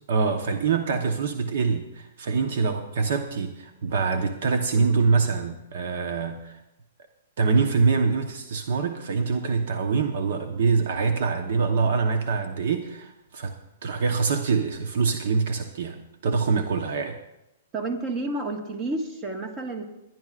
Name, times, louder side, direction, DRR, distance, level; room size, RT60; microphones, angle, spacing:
voice 1, 0.1-6.6 7.4-13.5 13.8-17.2, right 4 dB, 65° right, 6 dB, 1.0 m, -24 dB
voice 2, 17.7-19.8, right 2 dB, 25° right, 3 dB, 1.7 m, -30 dB
22.5 x 10.5 x 2.5 m, 0.91 s
hypercardioid pair, 140°, 0 cm